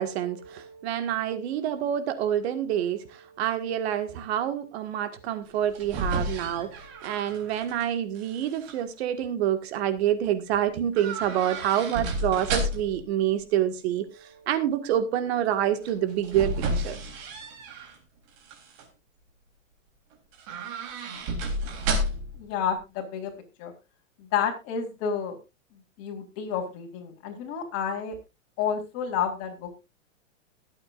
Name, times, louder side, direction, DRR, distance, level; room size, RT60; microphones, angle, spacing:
voice 1, 0.0-17.0, right 10 dB, 55° right, 1.9 m, -27 dB
sound 1, 5.5-7.8 8.2-8.7 10.9-13.0 15.8-18.0 18.4-18.9 20.3-22.4 22.7-22.8, right 1 dB, 40° right, 3.6 m, -32 dB
voice 2, 22.3-23.3 23.6-23.7 24.2-25.4 25.7-28.2 28.6-29.7, left 7 dB, 35° left, 4.1 m, -30 dB
21.5 x 8.7 x 2.5 m
hypercardioid pair, 135°, 39 cm